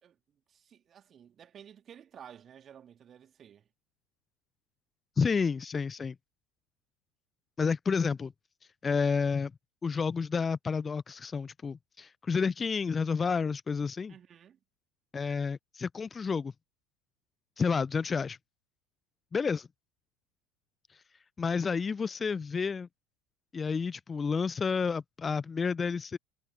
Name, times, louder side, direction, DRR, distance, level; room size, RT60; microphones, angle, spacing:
voice 1, 0.0-3.7 14.1-14.6, right 9 dB, 30° right, 2.7 m, -53 dB
voice 2, 5.2-6.1 7.6-8.3 8.8-9.5 9.8-14.1 15.1-16.5 17.6-18.4 19.3-19.7 21.4-22.9 23.5-26.2, left 5 dB, 20° left, 0.7 m, -30 dB
figure-of-eight pair, 75°, 0 cm